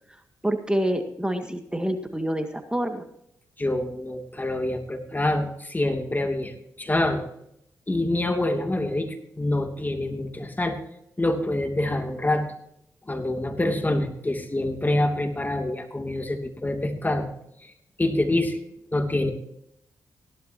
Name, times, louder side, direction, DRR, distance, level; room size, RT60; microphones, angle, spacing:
voice 1, 0.4-3.0, right 1 dB, 10° right, 6 dB, 1.9 m, -27 dB
voice 2, 3.6-7.3 7.9-10.8 11.2-12.4 13.1-17.3 18.0-18.6 18.9-19.3, left 1 dB, 25° left, 5 dB, 2.7 m, -26 dB
17.5 x 12.0 x 2.9 m, 0.74 s
supercardioid pair, 45°, 8 cm